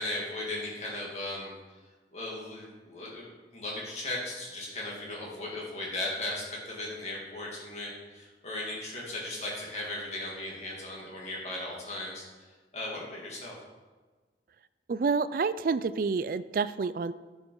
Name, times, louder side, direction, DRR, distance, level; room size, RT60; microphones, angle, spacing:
voice 1, 0.0-1.5 2.1-3.3 3.5-12.2 12.7-13.5, left 1 dB, 40° left, -4 dB, 2.4 m, -37 dB
voice 2, 14.9-17.1, right 4 dB, 50° right, 15 dB, 0.3 m, -28 dB
10.0 x 6.5 x 4.7 m, 1.3 s
head